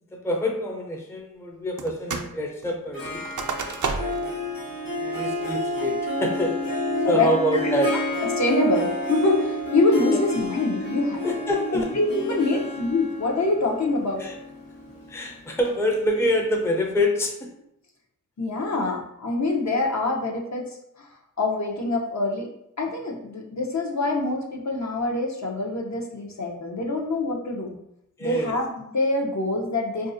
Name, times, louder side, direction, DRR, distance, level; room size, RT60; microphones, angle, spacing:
voice 1, 0.1-3.2 3.9-4.3 5.0-6.5 7.0-8.0 10.1-10.2 11.2-11.9 12.5-12.6 14.2-14.3 15.1-17.5 28.2-28.5, left 1 dB, 10° left, 1 dB, 0.5 m, -26 dB
sound 1, 1.8-2.4 2.6-4.3 4.8-4.9 5.4-5.8 6.3-6.7, right 4 dB, 65° right, 0.5 m, -31 dB
Harp, 2.9-16.5, equal, 85° left, 1.0 m, -30 dB
voice 2, 8.4-11.2 11.7-14.2 18.4-20.7 21.0-21.1 21.4-22.5 22.8-27.8 28.2-30.1, left 3 dB, 55° left, 0 dB, 0.7 m, -25 dB
4.0 x 2.6 x 2.6 m, 0.78 s
wide cardioid pair, 60°, 33 cm